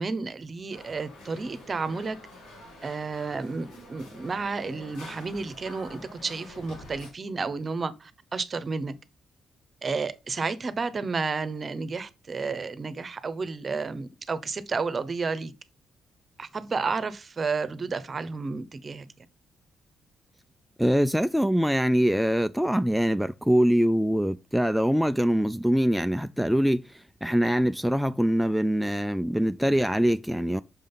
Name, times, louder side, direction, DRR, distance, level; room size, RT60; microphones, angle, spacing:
voice 1, 0.0-2.2 2.8-8.9 9.8-15.5 16.4-19.1, right 4 dB, 45° right, 0.9 m, -31 dB
sound 1, 0.7-7.1, left 1 dB, 80° left, 2.3 m, -47 dB
voice 2, 20.8-30.6, equal, ahead, 0.4 m, -24 dB
6.2 x 5.1 x 3.9 m
hypercardioid pair, 45°, 0 cm